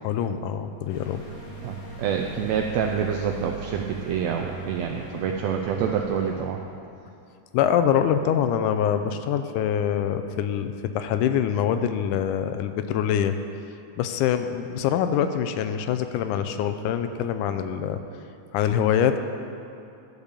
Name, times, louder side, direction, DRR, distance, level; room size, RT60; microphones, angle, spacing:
voice 1, 0.0-1.2 7.5-13.3 14.0-18.0 18.5-19.2, left 9 dB, 85° left, 9 dB, 2.0 m, -24 dB
sound 1, 0.9-6.4, right 2 dB, 40° left, 1.4 m, -39 dB
voice 2, 1.6-6.6, right 7 dB, 85° right, 2 dB, 1.5 m, -27 dB
12.0 x 5.3 x 6.7 m, 2.6 s
omnidirectional pair, 3.6 m